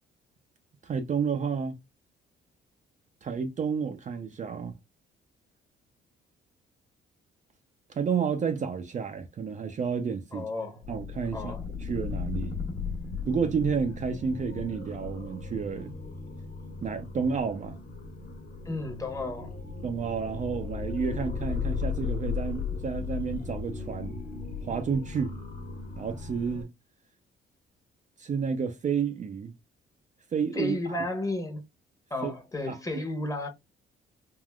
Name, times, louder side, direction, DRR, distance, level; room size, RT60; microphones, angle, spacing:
voice 1, 0.8-1.8 3.2-4.7 7.9-10.5 10.9-11.5 11.8-12.5 13.3-15.9 16.8-17.8 19.8-24.2 24.6-25.4 26.0-26.7 28.2-29.5 30.3-31.0 32.2-32.3 32.6-33.0, right 6 dB, 40° right, 0.5 m, -30 dB
voice 2, 10.3-10.8 11.3-11.6 18.7-19.5 30.6-31.6 32.1-33.5, left 2 dB, 15° left, 1.0 m, -33 dB
sound 1, 10.8-26.6, left 5 dB, 50° left, 1.3 m, -36 dB
3.6 x 2.4 x 2.2 m
cardioid pair, 90°, 20 cm